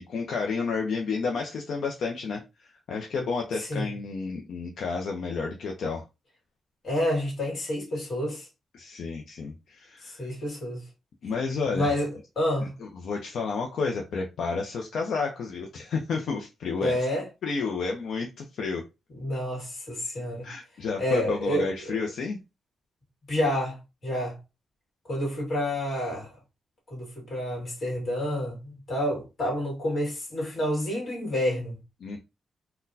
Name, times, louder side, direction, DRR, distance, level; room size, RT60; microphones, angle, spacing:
voice 1, 0.0-6.0 8.7-10.3 11.2-12.0 12.6-17.1 17.4-18.8 20.4-22.4 32.0-32.2, left 4 dB, 65° left, 0.5 m, -31 dB
voice 2, 6.8-8.5 10.1-10.8 11.7-12.1 12.4-12.8 16.8-17.3 19.2-20.5 21.0-21.7 23.3-24.4 25.1-26.3 26.9-31.8, left 1 dB, 40° left, 1.6 m, -29 dB
3.9 x 2.2 x 2.6 m
wide cardioid pair, 160°, 0 cm